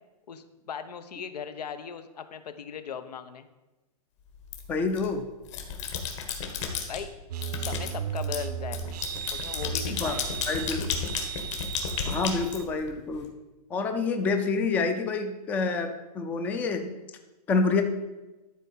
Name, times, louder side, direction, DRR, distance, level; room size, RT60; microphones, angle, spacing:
voice 1, 0.3-3.5 6.9-7.1 7.6-8.8 9.3-10.3 12.1-12.2, left 7 dB, 85° left, 11 dB, 1.1 m, -38 dB
sound 1, 4.5-5.1 5.4-7.0 7.4-13.2, left 6 dB, 50° left, 1.8 m, -33 dB
voice 2, 4.7-5.2 10.0-10.1 10.5-10.9 12.0-13.3 13.7-15.9 16.1-16.9 17.5-17.8, left 4 dB, 10° left, 7 dB, 0.4 m, -27 dB
sound 2, 7.3-12.6, right 9 dB, 85° right, 0.8 m, -36 dB
12.0 x 4.6 x 7.4 m, 1.1 s
hypercardioid pair, 165°, 20 cm